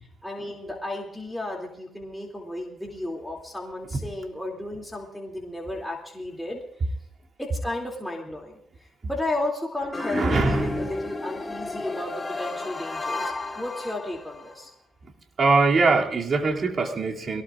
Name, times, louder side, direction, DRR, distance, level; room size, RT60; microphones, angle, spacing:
voice 1, 0.2-6.6 7.4-14.7, left 1 dB, 5° left, -1 dB, 2.7 m, -33 dB
sound 1, 9.9-14.6, left 3 dB, 25° left, 1.9 m, -32 dB
voice 2, 10.0-10.8 15.4-17.4, right 3 dB, 45° right, 0 dB, 2.6 m, -22 dB
22.5 x 18.5 x 2.5 m, 0.78 s
cardioid pair, 90°, 0 cm